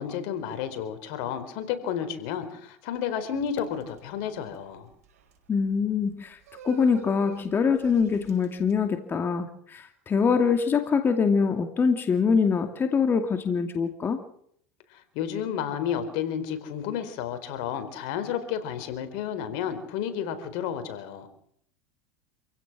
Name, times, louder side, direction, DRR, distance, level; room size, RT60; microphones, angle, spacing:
voice 1, 0.0-4.9 14.9-21.3, left 8 dB, 65° left, 10 dB, 4.4 m, -31 dB
sound 1, 3.5-8.7, right 6 dB, 85° right, 5.5 m, -48 dB
voice 2, 5.5-6.4 6.6-14.2, left 5 dB, 25° left, 6 dB, 2.4 m, -24 dB
27.5 x 16.5 x 6.2 m, 0.67 s
supercardioid pair, 105°, 8 cm